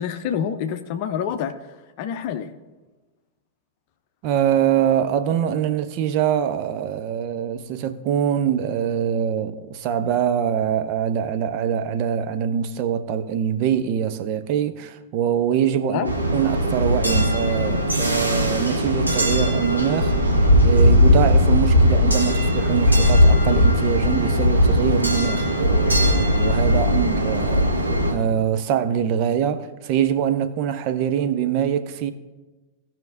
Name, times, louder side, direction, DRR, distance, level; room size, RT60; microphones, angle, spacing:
voice 1, 0.0-1.5 2.0-2.5 15.8-16.1, left 8 dB, 45° left, 0.6 m, -27 dB
voice 2, 4.2-16.0 16.3-20.1 20.6-32.1, right 9 dB, 45° right, 0.7 m, -24 dB
sound 1, 16.0-28.1, left 1 dB, 85° right, 1.5 m, -18 dB
17.5 x 5.9 x 2.7 m
figure-of-eight pair, 90°, 0 cm